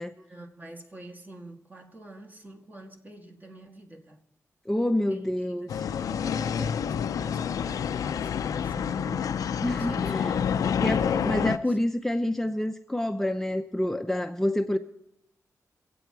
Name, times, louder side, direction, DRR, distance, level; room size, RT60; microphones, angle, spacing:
voice 1, 0.2-4.2 5.1-11.8, right 2 dB, 30° right, 1.8 m, -46 dB
voice 2, 4.7-5.9 9.6-10.4 10.8-14.8, left 1 dB, 5° left, 0.6 m, -28 dB
sound 1, 5.7-11.6, left 7 dB, 90° left, 0.5 m, -28 dB
23.0 x 8.5 x 4.6 m
cardioid pair, 75°, 6 cm